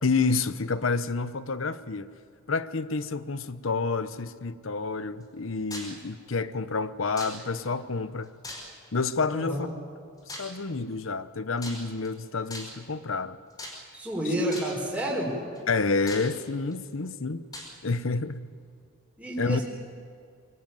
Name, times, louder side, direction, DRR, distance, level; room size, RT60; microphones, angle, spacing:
voice 1, 0.0-2.1 2.5-8.3 8.9-9.7 10.4-13.4 15.7-17.4 17.8-18.4 19.4-19.6, left 4 dB, 70° left, 0.9 m, -29 dB
sound 1, 5.7-6.0 7.2-7.7 8.4-9.0 10.3-10.6 11.6-12.1 12.5-12.9 13.6-14.0 14.5-14.9 15.5-15.6 16.1-16.7 17.5-17.7, left 1 dB, 20° left, 5.0 m, -40 dB
voice 2, 9.3-9.8 13.9-15.4 19.2-19.6, equal, 5° right, 4.6 m, -30 dB
24.0 x 21.0 x 9.3 m
head